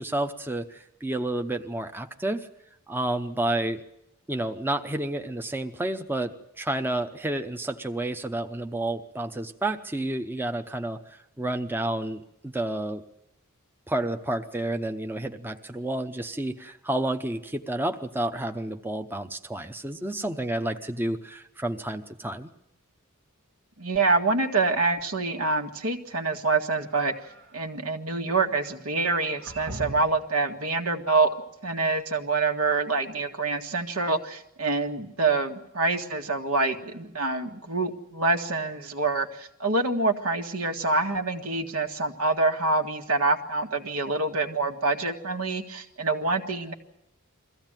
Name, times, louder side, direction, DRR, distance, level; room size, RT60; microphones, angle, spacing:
voice 1, 0.0-2.5 2.9-3.8 4.3-13.0 13.9-22.5, right 1 dB, 10° right, 6 dB, 0.7 m, -30 dB
voice 2, 23.8-27.1 27.5-31.3 31.6-46.7, right 3 dB, 75° right, 4 dB, 1.8 m, -26 dB
sound 1, 26.8-27.6 29.0-30.3, right 1 dB, 60° right, 1.8 m, -41 dB
22.5 x 15.5 x 9.0 m, 0.86 s
head